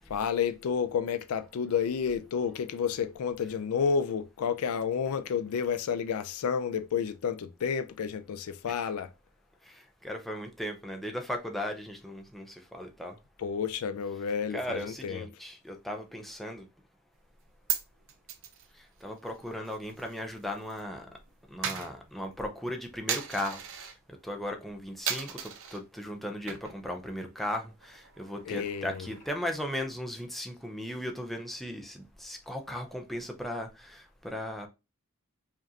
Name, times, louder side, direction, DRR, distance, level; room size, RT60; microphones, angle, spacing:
voice 1, 0.1-9.1 13.4-15.3 28.4-29.2, left 6 dB, 70° left, 0.4 m, -30 dB
voice 2, 9.7-13.2 14.5-16.7 19.0-21.1 21.5-23.8 24.2-34.7, equal, ahead, 0.5 m, -37 dB
Coin (dropping), 17.3-20.8 21.1-24.0 24.4-24.7 25.1-25.8 26.3-26.9 27.2-27.3 27.7-29.6, right 8 dB, 65° right, 0.6 m, -38 dB
5.0 x 2.5 x 2.7 m
head